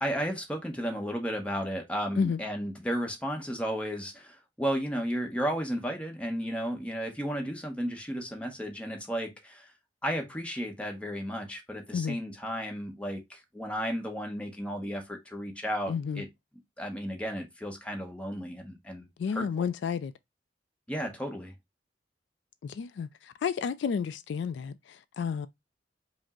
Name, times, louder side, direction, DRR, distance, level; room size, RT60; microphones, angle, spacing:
voice 1, 0.0-9.7 10.0-16.3 16.8-19.6 20.9-21.5, equal, 5° left, 0.9 m, -34 dB
voice 2, 15.9-16.2 19.2-20.1 22.6-25.5, left 6 dB, 70° left, 0.3 m, -31 dB
5.0 x 2.1 x 3.6 m
head